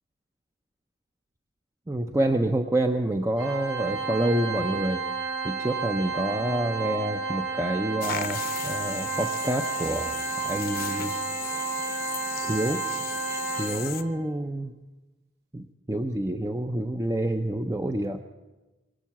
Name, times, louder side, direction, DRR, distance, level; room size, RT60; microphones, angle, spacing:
voice 1, 1.9-5.0 5.4-11.1 12.3-12.8 13.6-14.7 15.5-18.2, right 1 dB, 15° right, 5 dB, 0.5 m, -28 dB
Organ, 3.4-14.1, right 5 dB, 55° right, 2.4 m, -32 dB
sound 1, 8.0-14.0, left 10 dB, 50° left, 0.8 m, -36 dB
23.5 x 8.2 x 7.3 m, 1.1 s
head